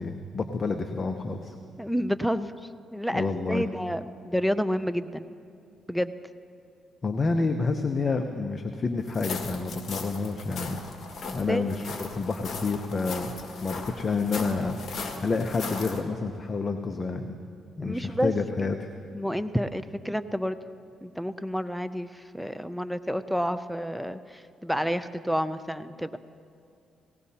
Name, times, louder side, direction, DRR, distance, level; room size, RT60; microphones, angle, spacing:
voice 1, 0.0-1.5 3.1-3.7 7.0-10.8 11.3-13.3 13.6-14.8 15.2-17.4 17.8-18.9, left 4 dB, 35° left, 5 dB, 0.7 m, -29 dB
voice 2, 1.8-2.6 2.9-5.3 5.9-6.1 7.4-7.5 11.3-11.6 17.8-18.3 19.1-20.6 21.0-26.2, equal, ahead, 12 dB, 0.4 m, -29 dB
sound 1, 9.1-16.0, left 4 dB, 55° left, 1.7 m, -38 dB
18.5 x 18.0 x 2.8 m, 2.4 s
cardioid pair, 90°, 0 cm